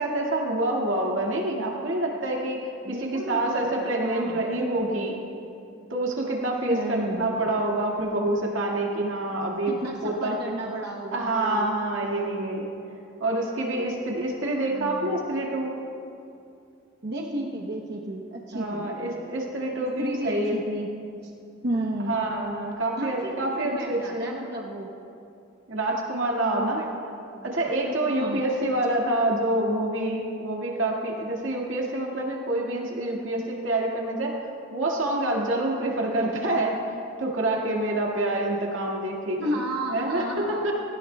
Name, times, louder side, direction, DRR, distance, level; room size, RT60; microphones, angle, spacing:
voice 1, 0.0-5.2 5.9-10.4 11.1-12.7 13.2-15.7 18.5-20.6 22.1-24.2 25.7-26.8 27.4-34.4 34.7-36.8 37.2-39.6 39.9-40.7, right 1 dB, 85° right, -1 dB, 2.0 m, -27 dB
voice 2, 2.8-4.5 6.7-7.4 9.7-11.7 12.0-12.6 14.7-15.2 17.0-19.1 20.0-20.9 21.2-21.3 21.6-22.2 23.0-24.9 26.5-26.9 27.2-27.6 28.2-28.4 39.4-40.7, right 1 dB, 60° right, -1 dB, 0.9 m, -33 dB
18.0 x 16.5 x 2.3 m, 2.6 s
head